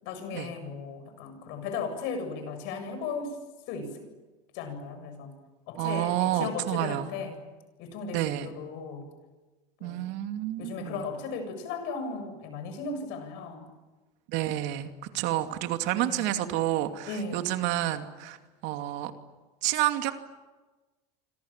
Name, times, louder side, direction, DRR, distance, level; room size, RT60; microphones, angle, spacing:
voice 1, 0.0-3.4 3.7-4.0 4.5-5.3 5.7-7.4 7.8-9.1 9.8-10.1 10.6-13.7 15.3-15.5 15.9-16.4 17.1-17.6, left 4 dB, 70° left, 8 dB, 7.6 m, -36 dB
voice 2, 5.8-7.1 8.1-8.5 9.8-11.0 14.3-18.4 18.6-19.1 19.6-20.1, right 14 dB, 65° right, 6 dB, 2.6 m, -29 dB
28.5 x 26.0 x 7.5 m, 1.2 s
supercardioid pair, 120°, 20 cm